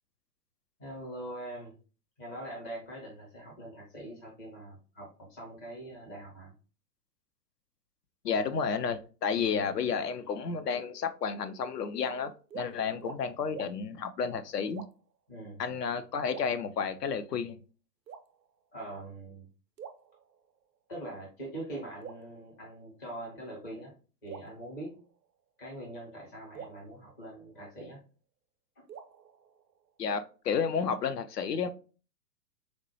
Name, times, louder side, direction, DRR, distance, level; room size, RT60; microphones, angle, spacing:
voice 1, 0.8-1.7 2.2-6.5 15.3-15.6 18.7-19.4 20.9-23.9 24.2-25.0 25.6-28.0, right 1 dB, 10° left, 0.4 m, -43 dB
voice 2, 8.2-14.8 15.6-17.6 30.0-31.7, left 6 dB, 70° left, 0.6 m, -31 dB
sound 1, 12.0-12.2 12.5-12.7 13.0-13.2 13.5-13.7 14.7-15.2 16.3-17.1 18.1-18.8 19.8-20.8 22.0-23.1 24.3-25.5 26.5-28.0 28.9-30.1, right 7 dB, 85° right, 0.6 m, -49 dB
4.2 x 2.0 x 2.8 m
figure-of-eight pair, 105°, 50 cm